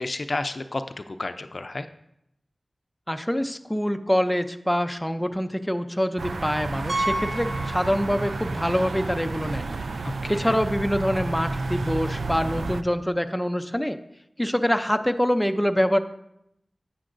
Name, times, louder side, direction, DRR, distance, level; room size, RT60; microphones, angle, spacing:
voice 1, 0.0-1.9 10.0-10.6, left 2 dB, 55° left, 9 dB, 0.5 m, -31 dB
voice 2, 3.1-9.7 10.3-14.0 14.4-16.0, equal, 5° left, 7 dB, 0.5 m, -25 dB
sound 1, 6.2-12.8, right 3 dB, 85° right, 0.3 m, -31 dB
Piano, 6.9-8.5 8.8-8.9 9.5-9.6 9.9-10.0 12.0-12.1, right 1 dB, 65° right, 1.2 m, -31 dB
9.9 x 8.3 x 2.6 m, 0.79 s
wide cardioid pair, 45°, 0 cm